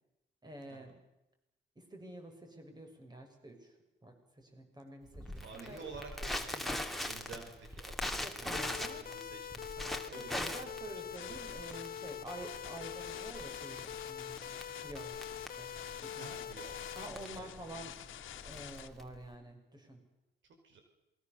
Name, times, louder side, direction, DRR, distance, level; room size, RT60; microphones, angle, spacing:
voice 1, 0.4-1.0 1.8-3.7 4.0-5.9 8.2-9.0 10.2-15.7 16.0-16.5 16.9-17.9 18.4-20.0, right 1 dB, 20° right, 4 dB, 6.5 m, -48 dB
Crackle, 5.1-19.3, left 1 dB, ahead, 2.8 m, -42 dB
voice 2, 5.3-10.5 16.1-16.8 17.3-17.7 20.6-20.8, right 4 dB, 70° right, 5 dB, 4.9 m, -51 dB
sound 1, 8.5-17.1, left 8 dB, 45° left, 1.2 m, -44 dB
sound 2, 11.1-18.9, left 11 dB, 80° left, 1.8 m, -49 dB
27.5 x 22.0 x 6.9 m, 0.92 s
cardioid pair, 90°, 20 cm